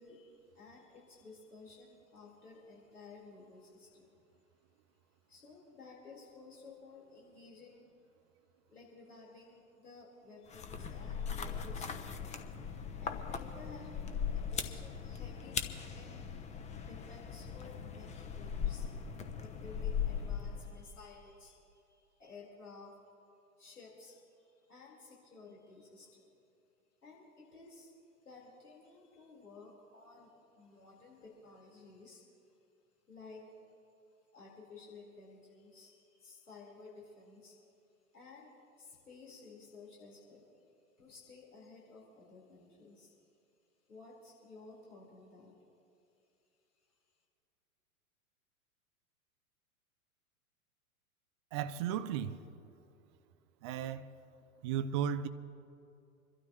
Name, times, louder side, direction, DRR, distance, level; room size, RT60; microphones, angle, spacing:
voice 1, 0.0-4.2 5.3-7.9 8.7-12.2 12.5-18.9 19.3-23.0 23.6-26.3 27.0-27.9 28.2-32.6 33.1-33.6 34.3-37.6 38.1-40.6 41.0-43.2 43.9-45.5, left 3 dB, 80° left, 4.4 m, -55 dB
sound 1, 10.5-20.9, left 7 dB, 15° left, 0.7 m, -39 dB
voice 2, 51.5-52.4 53.6-54.1 54.6-55.3, right 9 dB, 20° right, 0.3 m, -34 dB
27.0 x 12.5 x 3.1 m
figure-of-eight pair, 100°, 44 cm